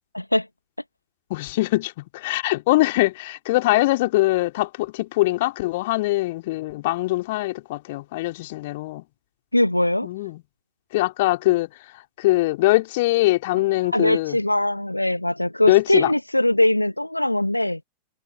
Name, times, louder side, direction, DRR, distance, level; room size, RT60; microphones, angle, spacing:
voice 1, 0.1-0.5 9.5-10.1 13.8-17.8, left 1 dB, 85° left, 1.2 m, -21 dB
voice 2, 1.3-9.0 10.0-10.4 10.9-11.7 12.2-14.4 15.6-16.1, left 19 dB, 50° left, 3.4 m, -22 dB
figure-of-eight pair, 90°, 0 cm